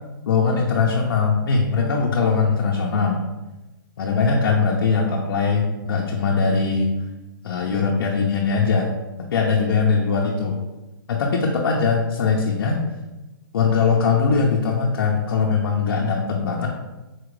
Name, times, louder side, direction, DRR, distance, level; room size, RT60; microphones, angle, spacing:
voice 1, 0.3-3.2 4.0-7.0 7.4-8.9 9.2-10.6 11.1-12.8 13.5-16.7, left 5 dB, 70° left, -1 dB, 0.6 m, -21 dB
4.3 x 2.4 x 3.1 m, 1.1 s
hypercardioid pair, 160°, 12 cm